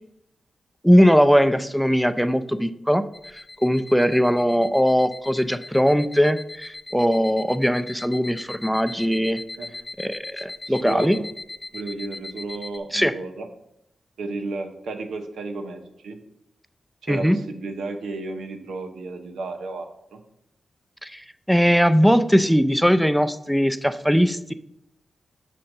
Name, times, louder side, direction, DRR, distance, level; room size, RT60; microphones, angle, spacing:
voice 1, 0.8-9.4 10.0-11.2 12.9-13.1 17.1-17.4 21.0-24.5, equal, ahead, 12 dB, 0.5 m, -20 dB
sound 1, 3.1-12.8, left 2 dB, 40° left, 0.9 m, -39 dB
voice 2, 10.6-11.3 11.7-13.5 14.2-16.2 17.0-20.2, right 3 dB, 90° right, 6 dB, 0.8 m, -33 dB
6.3 x 4.3 x 6.5 m, 0.80 s
cardioid pair, 50°, 0 cm